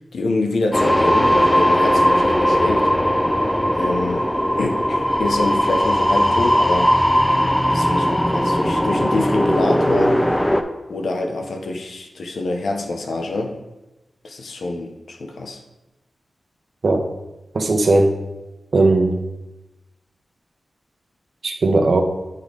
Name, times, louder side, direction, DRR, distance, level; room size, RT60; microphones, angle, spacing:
voice 1, 0.1-2.9 3.8-4.3 4.6-7.0 7.7-10.2 10.9-13.6 14.2-15.6, left 2 dB, 75° left, 3 dB, 0.7 m, -25 dB
sound 1, 0.7-10.6, equal, 10° left, 0.3 m, -18 dB
voice 2, 17.5-18.1 18.7-19.2 21.4-22.0, right 2 dB, 55° right, 4 dB, 0.7 m, -17 dB
8.5 x 3.3 x 3.8 m, 1.0 s
wide cardioid pair, 140°, 0 cm